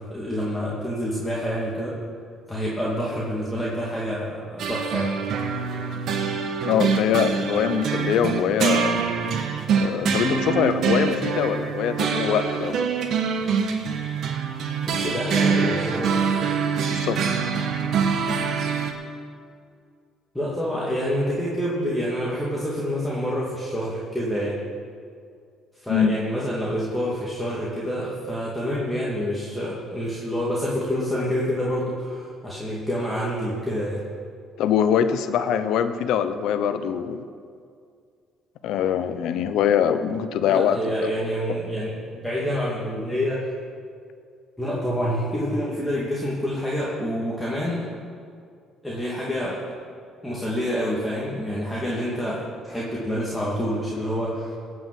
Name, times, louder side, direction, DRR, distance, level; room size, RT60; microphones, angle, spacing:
voice 1, 0.1-1.9 2.5-5.1 14.9-16.1 20.3-24.5 25.8-34.0 40.4-43.5 44.6-47.8 48.8-49.6 50.2-52.4 52.6-54.5, equal, 5° left, -7 dB, 2.6 m, -27 dB
sound 1, 4.6-18.9, right 6 dB, 65° right, 1.4 m, -25 dB
voice 2, 6.7-9.0 9.8-12.9 16.9-17.4 25.9-26.1 34.6-37.2 38.6-40.8, left 8 dB, 75° left, 11 dB, 0.8 m, -23 dB
17.0 x 6.2 x 7.8 m, 2.2 s
cardioid pair, 90°, 0 cm